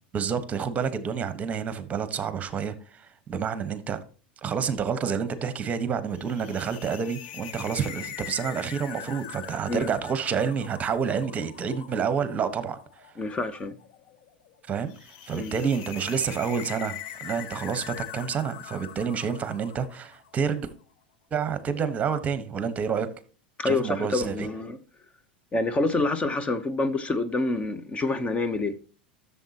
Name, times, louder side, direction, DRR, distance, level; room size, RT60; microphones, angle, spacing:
voice 1, 0.1-4.0 4.4-13.1 14.7-20.7 21.3-23.1 23.6-24.5, right 6 dB, 25° right, 1.2 m, -29 dB
sound 1, 6.2-20.5, left 11 dB, 65° left, 1.0 m, -42 dB
voice 2, 13.2-13.7 15.3-15.5 23.6-24.8 25.5-28.7, left 3 dB, 20° left, 0.8 m, -27 dB
12.5 x 7.1 x 2.9 m
hypercardioid pair, 100°, 5 cm